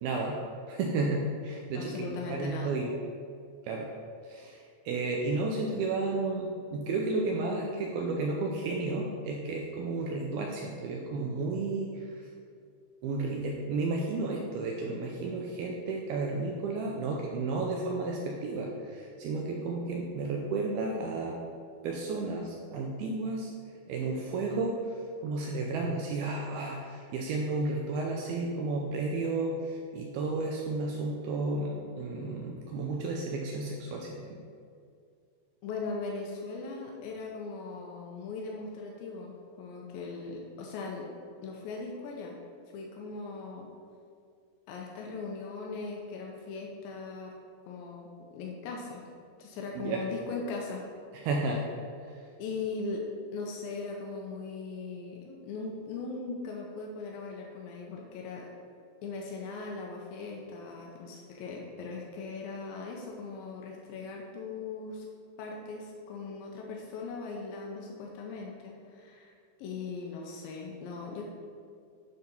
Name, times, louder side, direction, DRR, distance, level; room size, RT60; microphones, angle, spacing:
voice 1, 0.0-0.4 0.7-2.9 3.6-3.9 4.2-12.3 13.0-21.4 21.8-23.5 23.9-34.4 49.8-50.0 51.1-51.6 52.0-52.2, right 3 dB, 90° right, -1 dB, 2.2 m, -32 dB
voice 2, 1.8-2.8 35.6-41.1 41.4-42.4 42.7-43.7 44.7-47.3 47.7-49.0 49.4-50.8 52.4-53.1 53.3-58.5 59.0-65.1 65.4-69.3 69.6-71.2, left 4 dB, 85° left, -1 dB, 2.1 m, -39 dB
9.5 x 3.9 x 5.3 m, 2.3 s
omnidirectional pair, 5.1 m